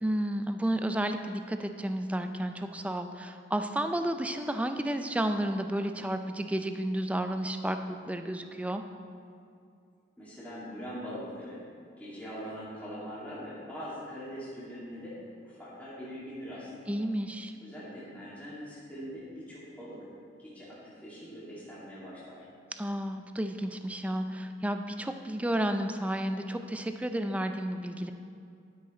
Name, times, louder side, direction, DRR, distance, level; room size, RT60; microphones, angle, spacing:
voice 1, 0.0-8.8 16.9-17.5 22.8-28.1, right 1 dB, 5° right, 7 dB, 0.4 m, -32 dB
voice 2, 10.2-11.6 12.0-15.2 15.4-16.9 17.6-20.0 20.4-22.4, equal, 10° left, -11 dB, 2.2 m, -42 dB
12.5 x 6.3 x 4.3 m, 2.4 s
head